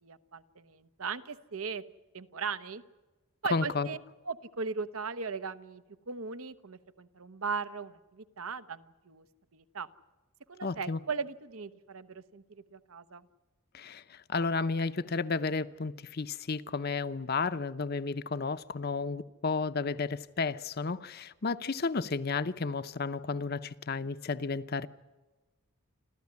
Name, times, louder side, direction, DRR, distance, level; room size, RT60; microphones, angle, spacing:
voice 1, 0.0-1.8 2.1-2.8 3.4-4.0 4.2-9.2 9.5-9.9 10.5-13.3, right 5 dB, 80° right, 1.0 m, -38 dB
voice 2, 3.5-3.9 10.6-11.0 13.7-24.9, left 4 dB, 45° left, 0.7 m, -32 dB
27.5 x 14.0 x 9.6 m
head